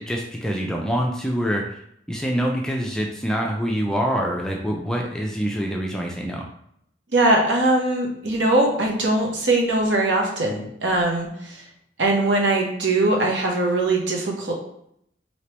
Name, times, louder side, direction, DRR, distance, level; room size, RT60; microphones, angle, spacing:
voice 1, 0.0-1.8 2.1-6.5, equal, 5° left, 0 dB, 0.3 m, -25 dB
voice 2, 7.1-11.6 12.0-14.5, right 2 dB, 75° right, 0 dB, 0.9 m, -21 dB
3.2 x 2.9 x 2.9 m, 0.72 s
head